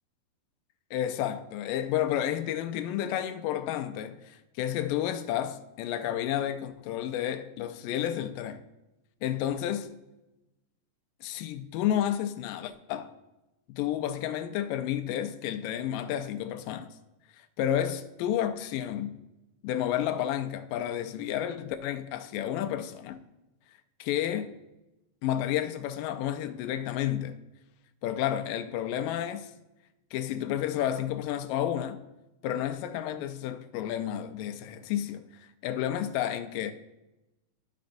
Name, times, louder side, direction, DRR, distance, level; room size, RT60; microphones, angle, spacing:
voice 1, 0.9-8.6 9.2-9.9 11.2-13.1 13.7-16.9 17.6-19.2 19.6-23.2 24.0-24.5 25.2-27.4 28.0-29.5 30.1-32.0 32.4-35.2 35.6-36.7, left 11 dB, 80° left, 2.2 m, -31 dB
12.5 x 5.2 x 2.5 m
omnidirectional pair, 4.0 m